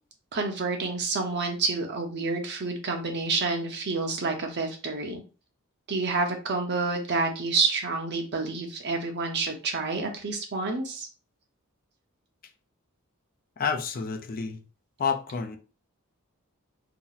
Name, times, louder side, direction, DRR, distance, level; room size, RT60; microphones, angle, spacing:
voice 1, 0.3-5.2 5.9-11.1, right 3 dB, 55° right, 0.8 m, -28 dB
voice 2, 13.6-14.6 15.0-15.6, left 6 dB, 45° left, 0.4 m, -29 dB
2.8 x 2.0 x 3.8 m
head